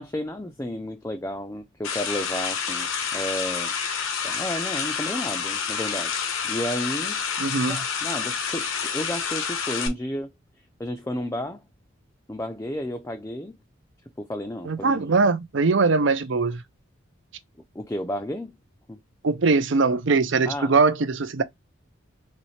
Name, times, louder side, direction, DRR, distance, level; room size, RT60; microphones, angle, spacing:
voice 1, 0.0-3.7 4.2-7.2 7.7-10.3 10.8-11.6 12.3-13.5 14.2-15.0 17.7-18.6 18.9-19.0 20.5-20.7, left 1 dB, 15° left, 0.4 m, -32 dB
sound 1, 1.8-9.9, left 6 dB, 90° left, 0.9 m, -28 dB
voice 2, 7.4-7.8 14.7-16.6 19.2-21.4, right 4 dB, 65° right, 0.6 m, -21 dB
4.2 x 3.1 x 3.1 m
head